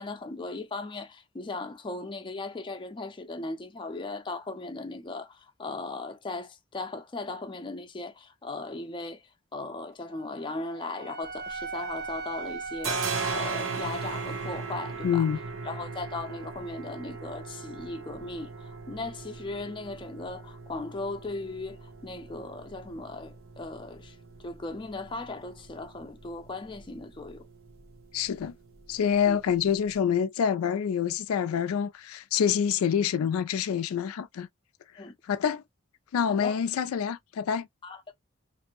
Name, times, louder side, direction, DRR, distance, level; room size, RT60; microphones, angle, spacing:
voice 1, 0.0-5.3 5.6-9.2 9.5-13.0 13.3-15.3 15.7-18.5 18.9-24.1 24.4-27.4 29.3-29.4 35.0-35.1 36.2-36.5 37.8-38.1, left 3 dB, 25° left, 0.5 m, -37 dB
Wind instrument woodwind instrument, 10.1-14.3, right 4 dB, 50° right, 0.5 m, -40 dB
sound 1, 11.3-12.2 12.4-30.0, right 4 dB, 70° right, 0.8 m, -38 dB
voice 2, 15.0-15.4 28.1-28.6 28.9-34.5 35.3-35.6 36.1-37.7, left 8 dB, 85° left, 0.3 m, -26 dB
2.6 x 2.0 x 2.9 m
head